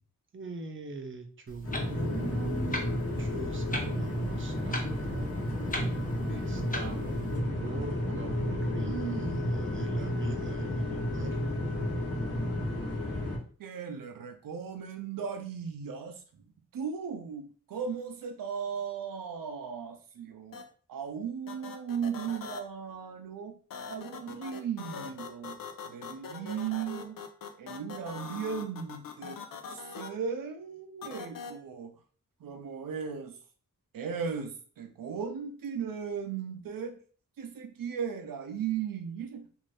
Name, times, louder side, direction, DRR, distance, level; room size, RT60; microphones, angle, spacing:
voice 1, 0.3-5.3 6.3-11.4, right 4 dB, 40° right, 0.5 m, -41 dB
Clock, 1.5-7.4, left 1 dB, 25° left, 0.6 m, -41 dB
sound 1, 1.6-13.4, left 1 dB, 45° left, 1.0 m, -32 dB
voice 2, 13.6-16.2 16.7-20.6 20.9-23.5 23.9-25.6 25.9-27.2 27.6-29.4 29.7-31.9 32.4-33.4 33.9-37.0 37.4-39.5, right 7 dB, 90° right, 0.5 m, -36 dB
sound 2, 20.5-20.6 21.5-22.6 23.7-30.1 31.0-31.5, left 6 dB, 85° left, 0.5 m, -41 dB
2.6 x 2.4 x 3.2 m
wide cardioid pair, 90°, 33 cm